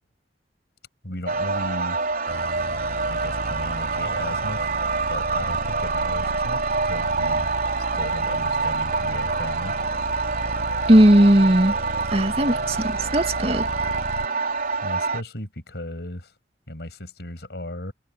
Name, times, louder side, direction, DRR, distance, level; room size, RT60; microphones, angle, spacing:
voice 1, 1.0-2.0 3.1-4.7 5.0-7.5 8.0-9.7 14.8-16.3 16.7-17.9, left 1 dB, 65° left, 7.2 m, -35 dB
sound 1, 1.3-15.2, right 4 dB, 55° right, 5.1 m, -26 dB
sound 2, 2.3-14.3, equal, 70° right, 7.6 m, -35 dB
voice 2, 10.9-11.7 12.1-13.7, right 1 dB, 35° right, 2.4 m, -17 dB
head